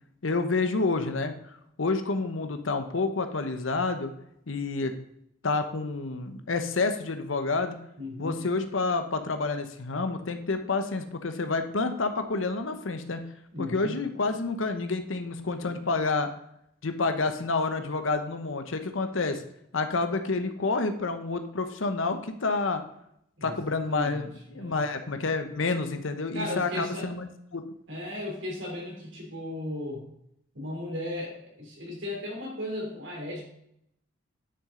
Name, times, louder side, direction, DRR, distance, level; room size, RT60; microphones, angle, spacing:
voice 1, 0.2-1.3 1.8-4.1 4.5-4.9 5.4-7.8 8.2-13.2 13.6-16.3 16.8-19.4 19.7-22.8 23.4-27.3 27.5-27.6, left 3 dB, 80° left, 8 dB, 0.9 m, -29 dB
voice 2, 8.0-8.4 13.5-14.0 23.4-24.9 26.3-27.1 27.9-30.1 30.5-33.4, left 1 dB, 65° right, -1 dB, 3.2 m, -36 dB
9.7 x 6.4 x 3.8 m, 0.75 s
head